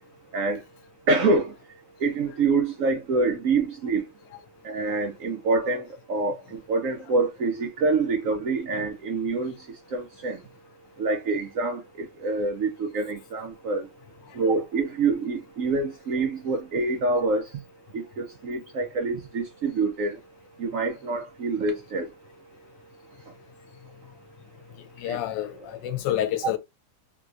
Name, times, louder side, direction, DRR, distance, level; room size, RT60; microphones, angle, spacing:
voice 1, 1.1-1.5 2.0-4.0 4.6-6.3 6.7-9.5 9.9-10.4 11.0-13.8 14.4-17.4 17.9-20.2 20.6-22.1 25.1-25.2, right 3 dB, 70° right, 0.8 m, -26 dB
voice 2, 25.0-26.6, left 11 dB, 90° left, 1.3 m, -28 dB
3.5 x 2.9 x 2.5 m
omnidirectional pair, 1.9 m